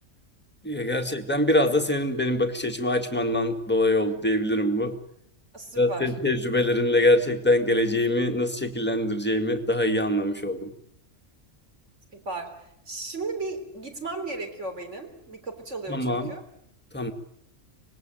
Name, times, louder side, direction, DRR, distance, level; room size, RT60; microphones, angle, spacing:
voice 1, 0.6-4.9 5.8-10.7 15.9-16.3 16.9-17.1, left 1 dB, 5° left, 5 dB, 2.0 m, -24 dB
voice 2, 5.5-6.1 12.1-16.4, right 3 dB, 55° right, 5 dB, 3.9 m, -35 dB
25.5 x 20.0 x 9.2 m, 0.73 s
omnidirectional pair, 1.4 m